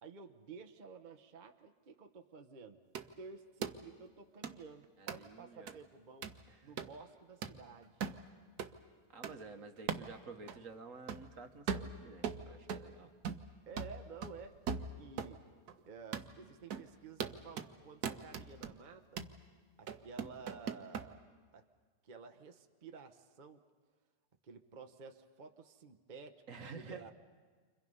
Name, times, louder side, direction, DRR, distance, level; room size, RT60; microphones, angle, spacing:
voice 1, 0.0-2.8 3.2-6.3 6.6-8.0 13.7-15.5 15.9-19.3 19.8-21.2 21.5-21.7 22.0-23.6 24.4-27.1, right 5 dB, 35° right, 6 dB, 0.9 m, -52 dB
sound 1, 3.0-3.1 3.6-3.8 4.4-4.6 5.1-5.2 5.7-5.8 6.2-6.4 6.8-6.9 7.4-7.6 8.0-8.2 8.6-8.7 9.2-9.4 9.9-10.1 10.5-10.6 11.1-11.3 11.7-12.9 13.2-13.5 13.8-15.4 15.7-15.8 16.1-16.3 16.7-16.9 17.2-17.7 18.0-18.7 19.2-19.4 19.9-21.1, right 7 dB, 75° right, 1.5 m, -40 dB
voice 2, 5.0-5.8 6.5-6.7 9.1-13.1 26.5-27.1, right 4 dB, 55° right, 6 dB, 1.4 m, -51 dB
30.0 x 25.5 x 5.5 m, 1.5 s
omnidirectional pair, 1.7 m